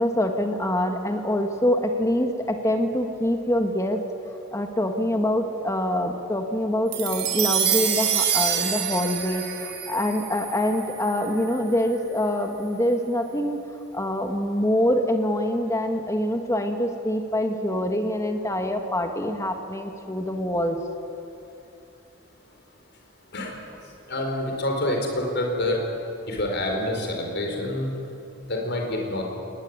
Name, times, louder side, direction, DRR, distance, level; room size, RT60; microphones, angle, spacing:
voice 1, 0.0-4.0 4.5-13.6 13.9-20.8, left 1 dB, 15° left, 5 dB, 1.4 m, -25 dB
sound 1, 6.9-11.4, right 9 dB, 55° right, 4.0 m, -26 dB
voice 2, 24.1-25.8 26.3-27.9 28.5-29.2, left 1 dB, 55° left, 1 dB, 4.5 m, -27 dB
22.0 x 20.0 x 9.6 m, 2.8 s
head